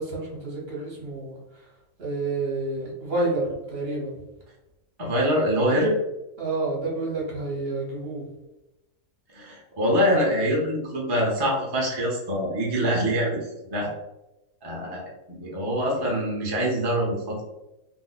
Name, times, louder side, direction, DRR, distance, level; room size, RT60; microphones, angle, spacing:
voice 1, 0.0-1.4 2.0-4.1 6.4-8.2 14.8-15.0, right 2 dB, 45° right, -4 dB, 1.0 m, -29 dB
voice 2, 5.0-5.9 9.3-13.9 14.6-17.4, equal, 30° right, -4 dB, 0.5 m, -25 dB
2.9 x 2.1 x 4.0 m, 0.97 s
omnidirectional pair, 1.5 m